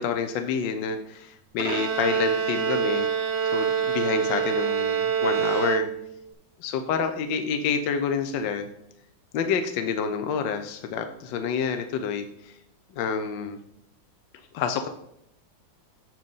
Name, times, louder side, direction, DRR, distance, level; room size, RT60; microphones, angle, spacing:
voice 1, 0.0-3.1 3.4-5.9 6.6-8.7 9.3-12.5 12.9-13.6 14.5-14.9, left 6 dB, 75° left, 7 dB, 1.4 m, -28 dB
Bowed string instrument, 1.6-6.3, right 7 dB, 75° right, 0.6 m, -26 dB
7.6 x 4.6 x 5.3 m, 0.76 s
omnidirectional pair, 2.1 m